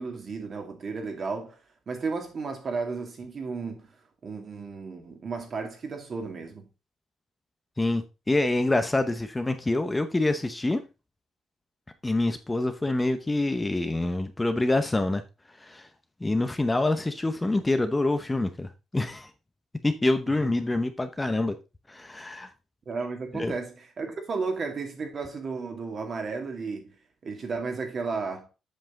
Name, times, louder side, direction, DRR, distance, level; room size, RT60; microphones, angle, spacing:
voice 1, 0.0-1.6 1.9-3.9 4.2-6.7 20.3-20.5 22.9-26.9 27.2-28.5, right 4 dB, 45° right, 2.2 m, -33 dB
voice 2, 7.8-10.8 12.0-15.2 15.6-15.9 16.2-18.7 18.9-19.3 19.8-21.6 21.9-22.5 23.3-23.6, left 2 dB, 15° left, 0.8 m, -26 dB
7.9 x 5.5 x 3.8 m
cardioid pair, 90°, 0 cm